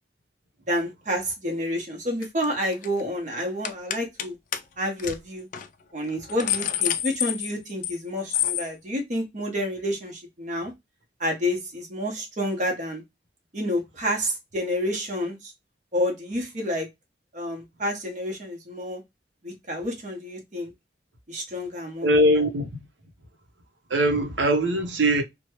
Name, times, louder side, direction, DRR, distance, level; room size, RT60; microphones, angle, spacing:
voice 1, 0.7-4.4 4.8-5.5 5.9-10.7 11.2-13.0 13.5-15.5 15.9-16.9 17.3-19.0 19.4-20.7 21.3-22.1, equal, 40° right, 1.0 m, -29 dB
sound 1, 2.2-2.5 2.7-3.0 3.6-4.3 4.5-4.6 5.0-5.2 5.5-5.7 6.1-8.0 8.3-8.7, left 12 dB, 45° left, 0.3 m, -27 dB
voice 2, 22.0-22.7 23.9-25.2, right 1 dB, 90° right, 0.8 m, -21 dB
2.9 x 2.2 x 2.9 m
head